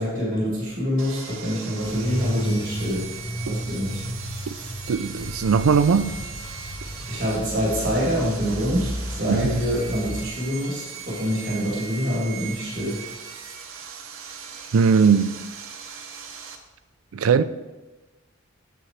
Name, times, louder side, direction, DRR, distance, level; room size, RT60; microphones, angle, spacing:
voice 1, 0.0-3.1 3.4-4.0 7.1-13.0, equal, 40° right, 2.6 m, -26 dB
Sawing, 1.0-16.6, right 6 dB, 70° right, 0.9 m, -39 dB
sound 1, 1.8-10.3, equal, 25° left, 0.8 m, -33 dB
voice 2, 4.9-6.2 9.3-9.6 14.7-15.4 17.1-17.4, right 6 dB, 90° right, 0.4 m, -19 dB
8.9 x 7.0 x 3.2 m
head